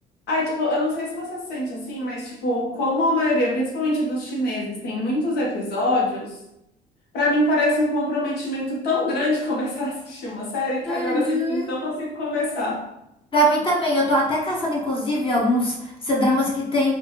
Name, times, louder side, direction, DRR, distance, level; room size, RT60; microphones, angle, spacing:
voice 1, 0.3-6.4 7.1-12.8, left 1 dB, 75° left, -3 dB, 1.2 m, -24 dB
voice 2, 10.8-11.8 13.3-16.9, equal, 30° left, -4 dB, 1.0 m, -22 dB
4.1 x 2.5 x 3.0 m, 0.85 s
cardioid pair, 110°, 17 cm